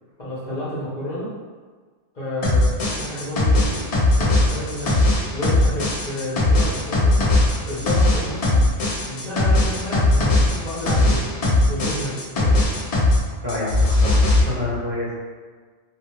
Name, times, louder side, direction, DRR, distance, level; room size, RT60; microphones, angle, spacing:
voice 1, 0.2-1.3 2.1-2.7 3.0-3.8 4.2-4.9 5.3-7.2 7.6-8.6 9.1-11.2 11.7-12.6, left 1 dB, 40° left, -11 dB, 0.8 m, -30 dB
sound 1, 2.4-13.2 13.5-14.4, left 2 dB, 70° left, 0.3 m, -19 dB
voice 2, 13.4-15.2, left 2 dB, 50° right, -9 dB, 0.8 m, -28 dB
2.4 x 2.3 x 2.9 m, 1.5 s
omnidirectional pair, 1.3 m